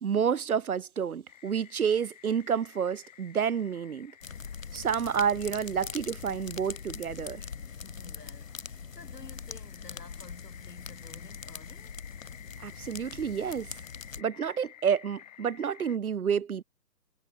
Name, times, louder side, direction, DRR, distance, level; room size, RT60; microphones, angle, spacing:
voice 1, 0.0-4.1 4.7-7.4 12.6-13.7 14.2-16.6, right 7 dB, 60° right, 0.7 m, -29 dB
sound 1, 1.3-16.0, left 11 dB, 25° left, 3.3 m, -54 dB
sound 2, 4.2-14.2, left 6 dB, 55° left, 1.6 m, -42 dB
voice 2, 7.8-11.9, left 3 dB, 70° left, 6.8 m, -51 dB
figure-of-eight pair, 155°, 48 cm